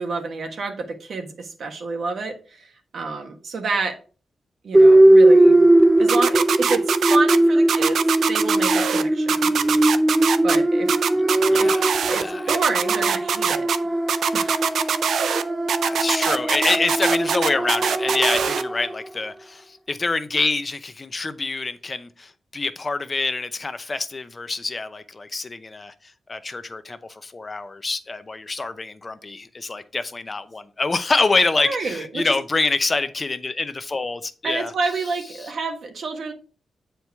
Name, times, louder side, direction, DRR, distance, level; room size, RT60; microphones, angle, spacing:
voice 1, 0.0-3.9 4.6-5.6 6.0-8.0 8.3-9.5 10.4-10.9 11.6-11.7 12.1-13.7 14.3-14.6 31.6-32.3 34.4-36.3, right 3 dB, 70° right, 1.3 m, -28 dB
sound 1, 4.7-18.9, right 1 dB, 15° right, 0.4 m, -19 dB
sound 2, 6.1-7.4 7.7-9.0 9.3-10.6 10.9-12.2 12.5-13.8 14.1-15.4 15.7-18.6, right 7 dB, 85° right, 0.4 m, -23 dB
voice 2, 11.5-12.6 15.8-25.9 26.3-34.7, left 3 dB, 35° left, 0.6 m, -26 dB
8.0 x 4.5 x 3.4 m
cardioid pair, 95°, 0 cm